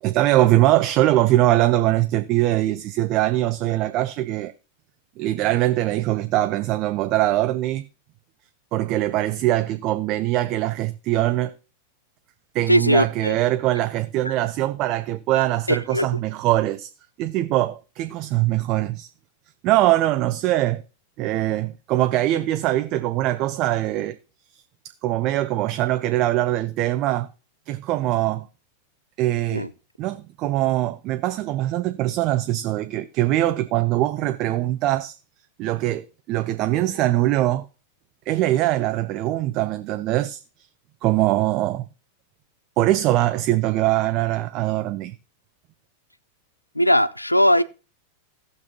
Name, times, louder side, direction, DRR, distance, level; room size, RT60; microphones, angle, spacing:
voice 1, 0.0-4.5 5.2-7.8 8.7-11.5 12.5-16.9 17.2-19.1 19.6-20.8 21.2-24.2 24.5-24.6 25.0-27.3 27.7-28.5 29.2-29.7 30.0-35.1 35.6-37.7 38.3-40.4 41.0-41.9 42.8-45.2, right 15 dB, 40° right, 0.4 m, -22 dB
voice 2, 12.7-13.4 14.2-14.3 15.7-16.1 29.5-29.7 46.7-47.6, equal, 85° left, 0.4 m, -19 dB
17.0 x 6.0 x 3.0 m
figure-of-eight pair, 90°, 0 cm